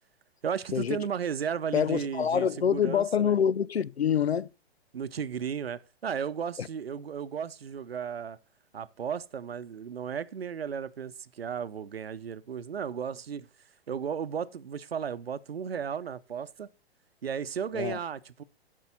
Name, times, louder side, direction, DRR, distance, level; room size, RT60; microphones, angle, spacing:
voice 1, 0.4-3.4 4.9-8.4 8.7-13.5 13.9-16.7 17.2-18.4, right 7 dB, 70° right, 0.8 m, -34 dB
voice 2, 1.7-4.5 6.6-6.7 17.7-18.0, left 8 dB, 80° left, 0.5 m, -26 dB
12.0 x 5.5 x 5.2 m
figure-of-eight pair, 115°, 32 cm